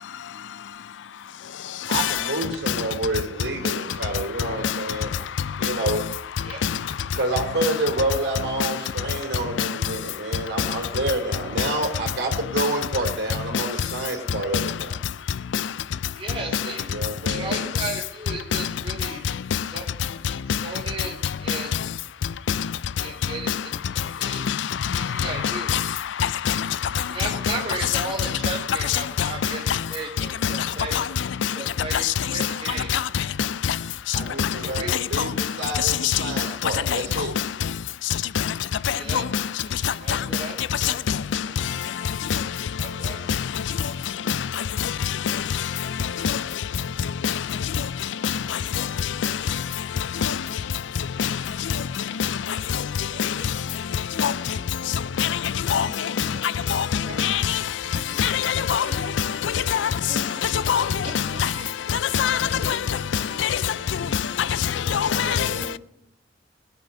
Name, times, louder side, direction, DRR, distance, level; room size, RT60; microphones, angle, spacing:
voice 1, 1.9-5.1 5.6-6.0 7.1-14.9 16.7-17.6 34.1-37.3 60.0-60.3 60.9-61.4 62.3-63.1 63.7-64.2 64.8-65.0 65.3-65.8, right 2 dB, 75° right, 3.2 m, -29 dB
voice 2, 16.1-16.8 17.3-19.2 19.7-19.8 20.6-21.7 23.0-23.5 24.2-24.4 24.9-25.7 27.1-29.6 29.9-31.0 31.6-32.0 32.3-32.9 34.6-35.2 38.9-39.3 40.0-40.5 40.8-41.0 41.7-41.8 42.8-43.2 52.1-52.2 53.1-53.3 53.7-53.8 54.8-54.9 55.8-56.0 56.6-56.7 57.1-57.3 57.8-58.2 58.8-59.2 59.6-59.7 60.1-60.5 61.0-61.6 62.6-63.4 64.0-64.1, right 3 dB, 30° right, 3.0 m, -35 dB
voice 3, 58.2-58.8 59.7-59.8 60.7-60.8 61.4-61.5 62.1-62.4 62.7-62.8 63.4-63.5 64.9-65.5, left 8 dB, 80° left, 0.4 m, -22 dB
20.5 x 8.4 x 5.5 m
head